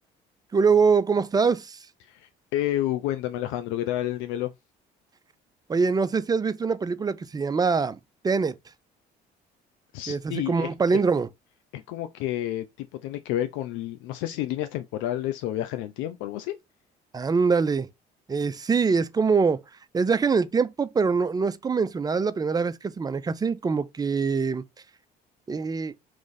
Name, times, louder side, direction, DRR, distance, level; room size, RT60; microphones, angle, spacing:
voice 1, 0.5-1.8 5.7-8.0 8.2-8.6 10.1-11.3 17.1-17.9 18.3-19.6 19.9-24.6 25.5-25.9, right 5 dB, 20° right, 0.4 m, -23 dB
voice 2, 2.0-4.5 9.9-11.0 11.7-16.5, left 13 dB, 80° left, 0.4 m, -30 dB
3.1 x 2.4 x 3.9 m
supercardioid pair, 80°, 20 cm